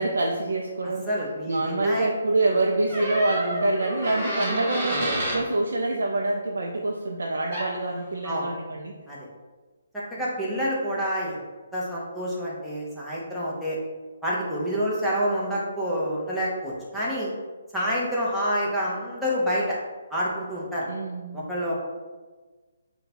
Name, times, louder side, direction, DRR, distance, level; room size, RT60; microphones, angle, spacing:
voice 1, 0.0-1.1 1.5-8.9 20.9-21.4, right 2 dB, 85° right, 0 dB, 0.4 m, -26 dB
voice 2, 1.1-2.1 8.2-8.5 9.1-9.2 10.1-11.4 11.7-13.8 14.2-17.3 17.7-19.8 20.1-20.9 21.3-21.7, equal, ahead, -8 dB, 0.7 m, -27 dB
sound 1, 2.9-5.4 7.5-7.7, right 1 dB, 30° right, 1.2 m, -28 dB
3.8 x 2.2 x 4.2 m, 1.3 s
hypercardioid pair, 160°, 0 cm